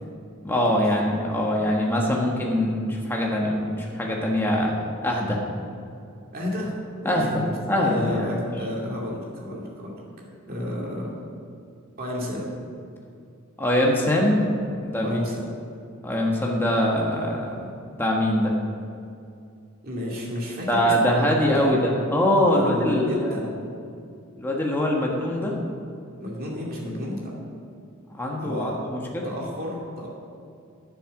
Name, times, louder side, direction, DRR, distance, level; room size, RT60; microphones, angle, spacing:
voice 1, 0.4-4.7 5.0-5.4 7.0-8.4 8.8-8.9 13.6-14.5 14.8-15.2 16.0-17.7 18.0-18.5 20.7-23.5 24.4-25.5 28.1-29.3, left 1 dB, 10° left, -2 dB, 1.3 m, -23 dB
voice 2, 6.3-6.7 7.0-7.5 7.8-9.9 10.5-11.2 12.0-12.5 15.0-15.5 19.8-21.8 22.5-23.5 26.2-27.3 28.4-28.8 29.2-30.1, left 1 dB, 40° right, -3 dB, 2.5 m, -32 dB
9.8 x 7.5 x 6.4 m, 2.4 s
head